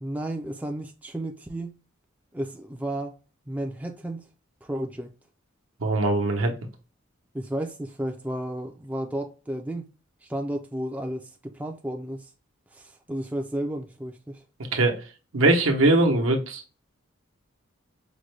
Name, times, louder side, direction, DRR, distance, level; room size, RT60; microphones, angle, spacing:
voice 1, 0.0-1.7 2.3-3.1 3.5-4.2 4.6-5.1 7.3-9.9 10.2-12.3 12.7-14.4, right 1 dB, 5° right, 0.3 m, -32 dB
voice 2, 5.8-6.5 14.7-14.9 15.3-16.8, right 2 dB, 80° right, 0.9 m, -21 dB
5.1 x 2.2 x 3.1 m
head